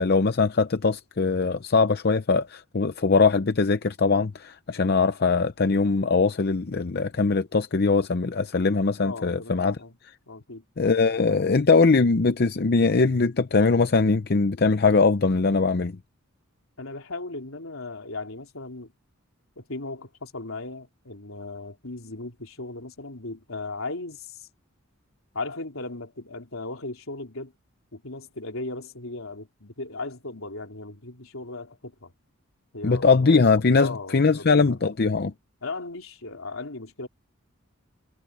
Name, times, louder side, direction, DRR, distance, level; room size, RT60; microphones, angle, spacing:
voice 1, 0.0-9.8 10.8-16.0 32.8-35.3, left 4 dB, 50° left, 0.6 m, -21 dB
voice 2, 9.0-9.9 10.3-10.6 16.8-18.9 19.6-24.5 25.3-27.5 27.9-32.1 32.7-34.8 35.6-37.1, left 2 dB, 75° left, 3.5 m, -37 dB
head